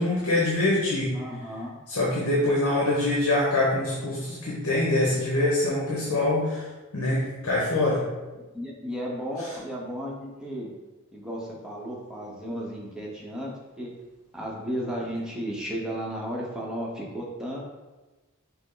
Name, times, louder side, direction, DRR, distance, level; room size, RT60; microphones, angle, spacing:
voice 1, 0.0-1.2 1.9-6.6 6.9-8.0, left 2 dB, 70° left, -5 dB, 1.1 m, -24 dB
voice 2, 1.1-1.8 8.3-10.7 11.1-13.9 14.3-17.6, equal, 5° right, -4 dB, 0.8 m, -34 dB
6.2 x 2.1 x 3.8 m, 1.1 s
head